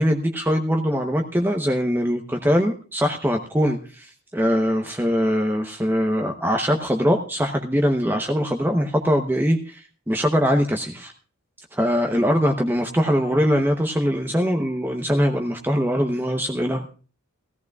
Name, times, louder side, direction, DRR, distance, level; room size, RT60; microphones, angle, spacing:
voice 1, 0.0-11.1 11.7-16.9, equal, 10° right, 3 dB, 0.8 m, -22 dB
18.0 x 14.5 x 2.3 m, 0.37 s
head